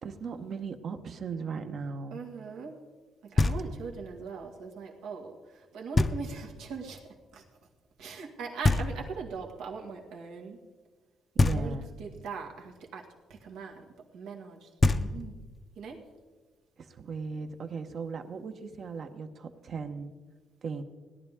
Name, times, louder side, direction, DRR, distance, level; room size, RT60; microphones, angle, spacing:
voice 1, 0.0-2.2 11.3-11.9 16.8-20.1 20.6-20.8, right 5 dB, 55° right, 7 dB, 1.0 m, -37 dB
voice 2, 2.1-2.7 3.2-7.0 7.3-7.4 8.0-10.6 11.5-13.9 14.1-15.4 15.8-16.0, right 5 dB, 90° right, 0 dB, 1.8 m, -41 dB
Knock, 3.4-4.0 6.0-6.6 8.6-9.4 11.4-12.1 14.4-14.5 14.8-15.6, left 3 dB, 30° left, 0.6 m, -27 dB
17.5 x 11.0 x 3.7 m, 1.4 s
cardioid pair, 90°, 0 cm